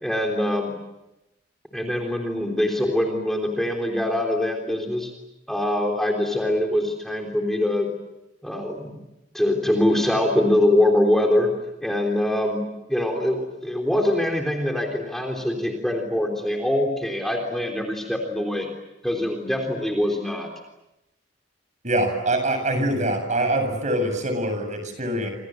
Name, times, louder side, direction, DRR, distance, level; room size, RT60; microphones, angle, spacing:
voice 1, 0.0-0.7 1.7-5.1 5.5-7.9 8.4-9.0 9.3-11.5 11.8-12.6 12.9-18.7 19.0-20.5, left 1 dB, ahead, 2 dB, 3.6 m, -23 dB
voice 2, 21.8-25.3, right 1 dB, 40° right, 7 dB, 7.7 m, -24 dB
28.0 x 27.0 x 7.9 m, 0.93 s
head